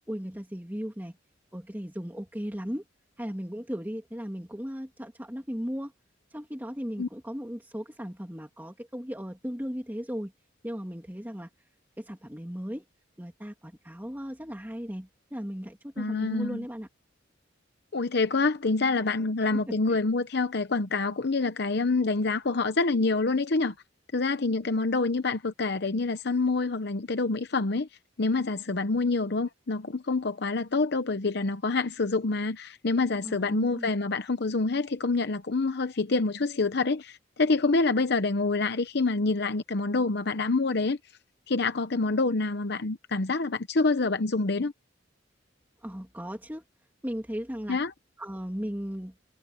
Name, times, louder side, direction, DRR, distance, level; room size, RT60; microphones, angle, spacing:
voice 1, 0.1-1.1 1.5-2.8 3.2-5.9 6.3-10.3 10.6-11.5 12.0-12.8 13.2-16.9 19.4-20.0 33.2-33.9 45.8-46.6 47.0-47.8 48.2-49.1, equal, 10° right, 2.8 m, -36 dB
voice 2, 16.0-16.6 17.9-23.7 24.1-27.9 28.2-41.0 41.5-44.7 47.7-47.9, left 3 dB, 60° left, 0.8 m, -27 dB
head